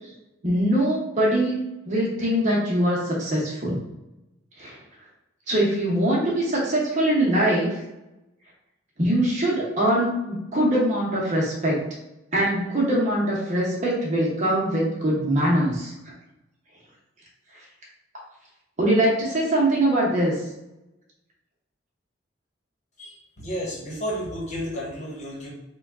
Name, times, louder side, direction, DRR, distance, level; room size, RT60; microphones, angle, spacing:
voice 1, 0.4-3.8 4.6-4.8 5.5-7.7 9.0-11.8 12.3-15.9 18.8-20.3, right 1 dB, 40° right, -4 dB, 0.9 m, -22 dB
voice 2, 23.0-25.5, equal, 35° left, -4 dB, 1.1 m, -32 dB
3.4 x 2.3 x 3.6 m, 0.96 s
head